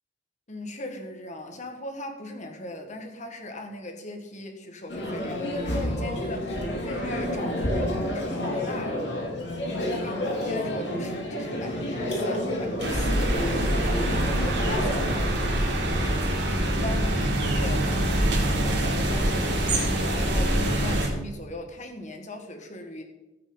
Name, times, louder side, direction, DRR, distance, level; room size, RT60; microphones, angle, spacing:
voice 1, 0.5-9.0 9.4-10.2 10.4-17.9 18.2-23.0, left 1 dB, 40° left, 4 dB, 1.8 m, -39 dB
sound 1, 4.9-15.1, left 1 dB, 75° left, 3.3 m, -29 dB
sound 2, 12.8-21.1, right 1 dB, 70° right, 2.9 m, -25 dB
15.0 x 8.9 x 4.0 m, 1.0 s
head